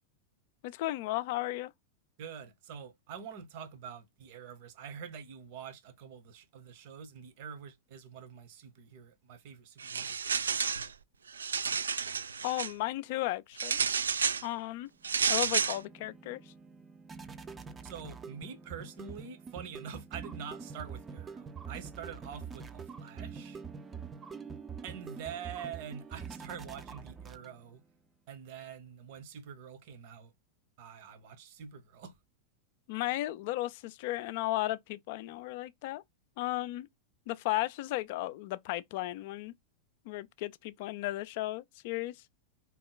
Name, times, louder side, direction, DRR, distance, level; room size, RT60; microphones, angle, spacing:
voice 1, 0.6-1.7 12.4-13.8 14.4-14.9 15.3-16.4 32.9-36.0 36.4-36.9 37.3-39.5 40.1-42.2, left 17 dB, 50° left, 0.4 m, -34 dB
voice 2, 2.2-10.6 17.8-23.6 24.8-27.8 28.3-30.3 30.8-32.1, right 7 dB, 50° right, 1.0 m, -46 dB
sound 1, 9.8-10.9 11.3-12.7 13.6-14.4 15.0-15.8, right 6 dB, 70° right, 0.3 m, -31 dB
sound 2, 15.0-27.8, right 6 dB, 15° right, 0.5 m, -45 dB
3.7 x 3.0 x 3.9 m
figure-of-eight pair, 90°, 0 cm